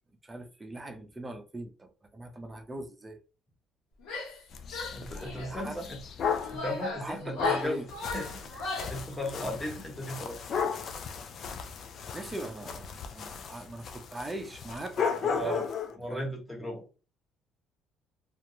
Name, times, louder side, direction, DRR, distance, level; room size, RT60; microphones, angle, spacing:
voice 1, 0.2-3.2 5.1-5.8 7.0-7.9 12.1-15.7 16.1-16.3, right 1 dB, 15° right, 0.6 m, -40 dB
Female speech woman speaking / Yell, 4.0-4.4 4.7-5.6 6.2-9.0, left 1 dB, 90° left, 1.0 m, -38 dB
sound 1, 4.5-6.6 7.4-16.0, left 6 dB, 50° left, 0.4 m, -35 dB
voice 2, 4.9-6.0 6.5-7.9 8.1-10.4 15.3-15.6 16.0-16.8, equal, 10° left, 1.0 m, -36 dB
2.4 x 2.1 x 2.9 m
cardioid pair, 115°, 0 cm